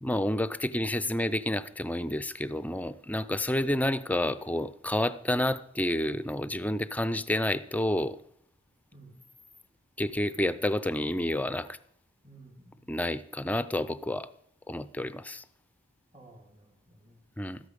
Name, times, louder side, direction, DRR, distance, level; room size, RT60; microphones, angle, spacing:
voice 1, 0.0-8.2 10.0-11.7 12.9-14.3 14.7-15.4 17.4-17.6, left 1 dB, 10° left, 15 dB, 0.4 m, -29 dB
voice 2, 8.9-9.3 12.2-13.0 16.1-17.3, right 2 dB, 35° right, -2 dB, 2.1 m, -54 dB
14.0 x 12.0 x 5.1 m, 0.68 s
head